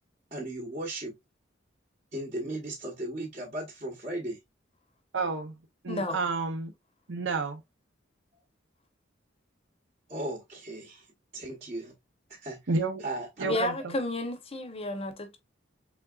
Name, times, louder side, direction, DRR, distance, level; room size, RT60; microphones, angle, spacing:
voice 1, 0.3-1.1 2.1-4.4 10.1-11.1 11.3-11.9 12.3-12.6 13.0-13.7, right 1 dB, 35° right, 0.9 m, -36 dB
voice 2, 5.1-5.6 5.8-6.7 7.1-7.6 12.7-13.0 13.4-14.0, right 4 dB, 70° right, 0.6 m, -30 dB
voice 3, 13.4-15.4, left 2 dB, 30° left, 0.8 m, -32 dB
3.9 x 3.4 x 2.3 m
head